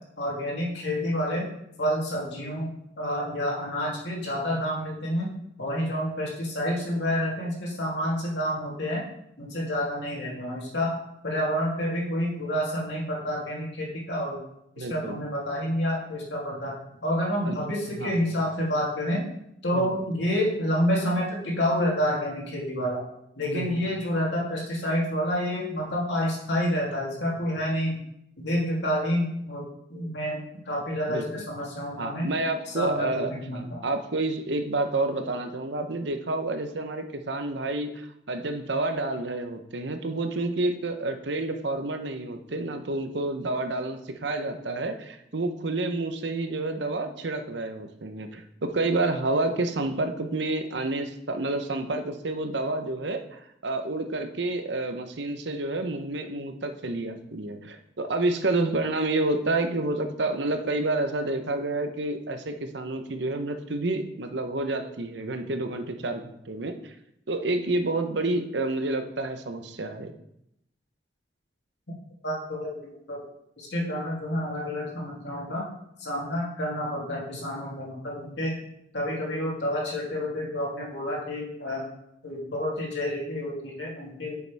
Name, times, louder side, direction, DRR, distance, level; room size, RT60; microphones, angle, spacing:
voice 1, 0.2-1.5 1.8-2.7 3.0-5.3 5.6-9.0 9.4-11.0 11.2-14.4 14.8-16.7 17.0-19.3 19.6-23.0 23.4-28.0 28.4-29.6 29.9-30.4 30.6-32.3 32.7-33.8 72.2-73.2 73.6-75.7 76.0-78.6 78.9-81.8 82.2-84.4, equal, 70° left, -4 dB, 2.9 m, -29 dB
voice 2, 14.8-15.2 17.4-17.6 18.0-18.2 19.7-19.9 23.4-23.7 31.1-31.5 32.0-66.9 67.3-70.1, right 2 dB, 75° right, 7 dB, 0.9 m, -29 dB
9.7 x 6.8 x 3.5 m, 0.78 s
head